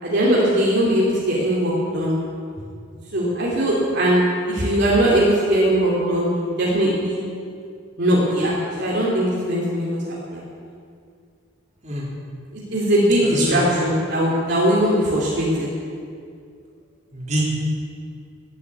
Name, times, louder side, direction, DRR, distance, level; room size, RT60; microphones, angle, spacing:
voice 1, 0.0-2.1 3.1-7.2 8.0-8.5 8.8-10.4 12.5-15.7, right 1 dB, 55° right, -5 dB, 2.7 m, -20 dB
voice 2, 13.2-13.6 17.1-17.4, right 1 dB, 35° right, -4 dB, 3.5 m, -25 dB
18.5 x 8.4 x 8.3 m, 2.3 s
head